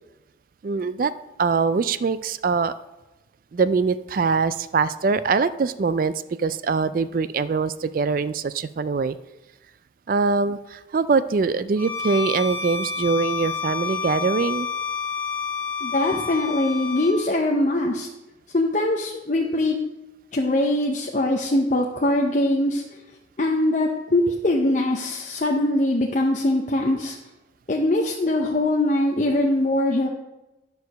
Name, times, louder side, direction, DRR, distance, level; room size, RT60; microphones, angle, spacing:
voice 1, 0.6-1.1 1.4-2.7 3.5-9.2 10.1-14.7, right 4 dB, 45° right, 14 dB, 0.3 m, -23 dB
Bowed string instrument, 11.8-17.2, left 5 dB, 10° left, 1.8 m, -29 dB
voice 2, 15.8-18.1 18.5-19.8 20.3-22.8 23.4-27.2 27.7-30.1, left 1 dB, 40° left, 1 dB, 0.7 m, -22 dB
10.5 x 4.7 x 6.5 m, 1.0 s
head